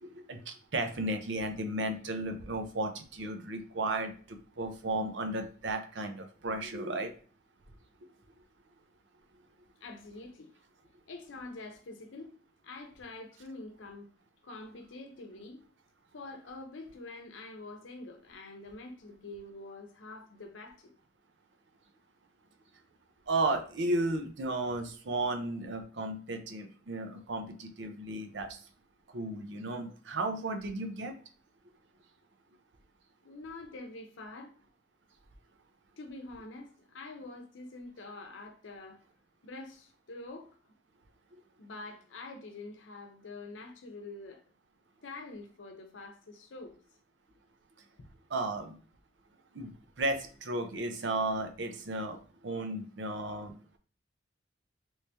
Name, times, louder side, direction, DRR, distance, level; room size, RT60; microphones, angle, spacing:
voice 1, 0.0-7.1 23.3-28.6 29.1-31.1 48.3-48.8 49.5-53.5, right 2 dB, 70° right, 0.6 m, -34 dB
voice 2, 9.8-10.5 11.1-12.4 12.6-14.1 14.4-15.6 16.1-20.9 33.2-34.5 36.0-39.0 39.4-40.7 41.6-44.4 45.0-46.8, left 2 dB, 90° left, 0.6 m, -46 dB
3.1 x 2.7 x 3.3 m
head